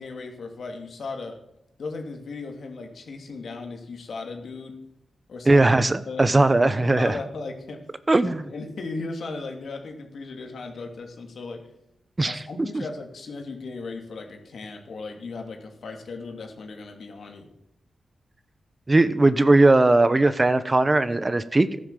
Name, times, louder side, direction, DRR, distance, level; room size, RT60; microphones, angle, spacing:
voice 1, 0.0-1.4 1.8-4.8 5.3-5.7 6.1-6.3 6.8-7.8 8.2-11.7 12.2-17.5, left 3 dB, 75° left, 3 dB, 2.7 m, -36 dB
voice 2, 5.5-7.1 8.1-8.4 12.2-12.4 12.7-12.8 18.9-21.8, right 2 dB, 30° right, 13 dB, 1.0 m, -19 dB
14.0 x 10.5 x 7.5 m, 0.82 s
cardioid pair, 65°, 0 cm